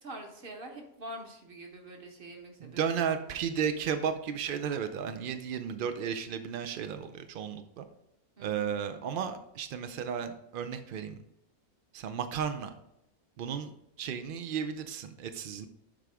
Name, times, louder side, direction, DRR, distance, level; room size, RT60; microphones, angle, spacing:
voice 1, 0.0-3.0 8.4-8.7, right 1 dB, 40° right, 3 dB, 1.2 m, -45 dB
voice 2, 2.6-7.9 8.4-11.2 11.9-12.7 13.4-13.7 14.0-15.7, right 7 dB, 75° right, 8 dB, 0.4 m, -34 dB
7.5 x 4.9 x 3.4 m, 0.81 s
omnidirectional pair, 1.5 m